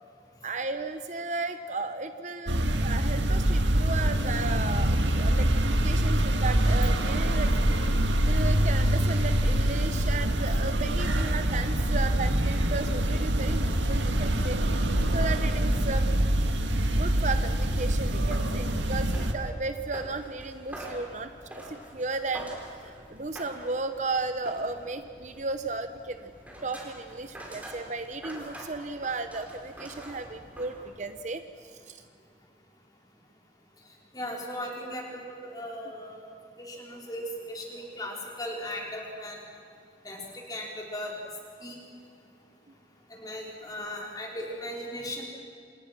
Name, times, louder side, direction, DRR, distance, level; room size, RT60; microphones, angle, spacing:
voice 1, 0.4-7.5 8.2-16.1 16.9-26.3 26.6-32.0, right 3 dB, 40° right, 9 dB, 0.9 m, -35 dB
sound 1, 2.5-19.3, right 1 dB, 85° right, 2.0 m, -25 dB
sound 2, 16.4-31.2, right 1 dB, 10° right, 4.5 m, -46 dB
voice 2, 34.1-36.3 36.6-39.4 40.0-40.2 40.5-41.1 41.6-41.8 43.1-45.2, left 1 dB, 20° left, -1 dB, 4.8 m, -37 dB
29.0 x 27.5 x 6.2 m, 2.3 s
head